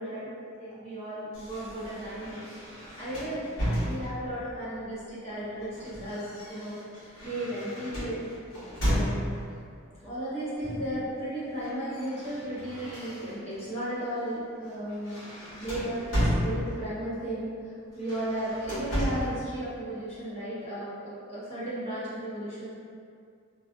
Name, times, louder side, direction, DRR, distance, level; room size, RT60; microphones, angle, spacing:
voice 1, 0.0-2.5 3.0-3.5 3.8-6.7 7.2-8.3 8.8-9.2 10.0-15.2 15.6-22.7, right 1 dB, 30° left, -11 dB, 0.8 m, -35 dB
sound 1, 1.3-4.4 5.4-9.6 10.6-11.0 11.3-13.6 14.0-14.3 14.6-17.0 17.9-19.4, equal, 70° left, 1.2 m, -33 dB
2.4 x 2.4 x 2.4 m, 2.3 s
head